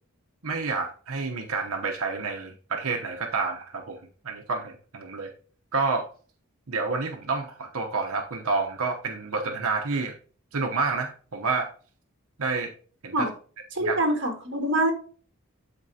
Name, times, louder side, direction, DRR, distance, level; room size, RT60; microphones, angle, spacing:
voice 1, 0.4-4.0 4.2-5.3 5.7-6.1 6.7-10.1 10.5-11.7 12.4-12.7 13.0-13.3 13.8-14.0, right 4 dB, 90° right, 3 dB, 1.0 m, -29 dB
voice 2, 13.7-14.9, right 1 dB, 55° right, 3 dB, 1.9 m, -25 dB
12.5 x 4.4 x 2.8 m, 0.40 s
head